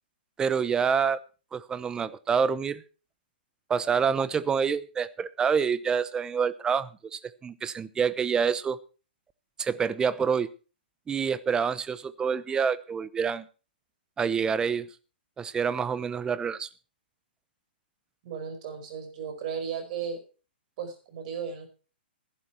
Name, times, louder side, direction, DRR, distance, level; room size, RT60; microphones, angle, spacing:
voice 1, 0.4-1.2 1.5-2.8 3.7-8.8 9.6-10.5 11.1-13.5 14.2-14.9 15.4-16.7, right 6 dB, 15° right, 17 dB, 0.7 m, -27 dB
voice 2, 18.2-20.2 20.8-21.7, right 7 dB, 45° right, 6 dB, 4.8 m, -35 dB
14.0 x 11.5 x 4.5 m, 0.35 s
hypercardioid pair, 135°, 6 cm